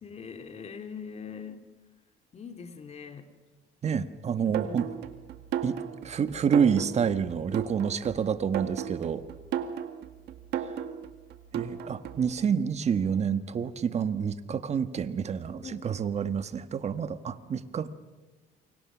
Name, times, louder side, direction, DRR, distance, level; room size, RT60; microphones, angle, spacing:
voice 1, 0.0-1.6 2.3-3.3 4.4-4.8 11.8-12.0 15.6-15.8, left 6 dB, 40° left, 7 dB, 2.4 m, -42 dB
voice 2, 3.8-4.9 5.6-5.8 6.0-9.2 11.5-17.9, right 7 dB, 40° right, 11 dB, 1.4 m, -28 dB
sound 1, 4.5-12.4, right 9 dB, 75° right, 1.9 m, -35 dB
28.5 x 25.0 x 6.1 m, 1.2 s
cardioid pair, 110°, 17 cm